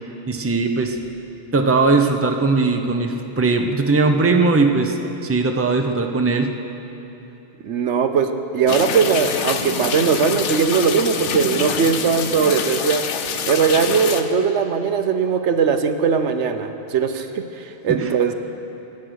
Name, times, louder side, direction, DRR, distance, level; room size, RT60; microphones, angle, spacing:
voice 1, 0.3-1.0 1.5-5.0 5.2-6.5 17.9-18.3, right 3 dB, 15° right, 4 dB, 0.7 m, -19 dB
voice 2, 7.6-13.0 13.4-18.3, right 6 dB, 75° right, 7 dB, 1.1 m, -19 dB
sound 1, 8.7-14.2, left 6 dB, 75° left, 1.1 m, -26 dB
24.0 x 8.5 x 6.3 m, 2.9 s
omnidirectional pair, 1.2 m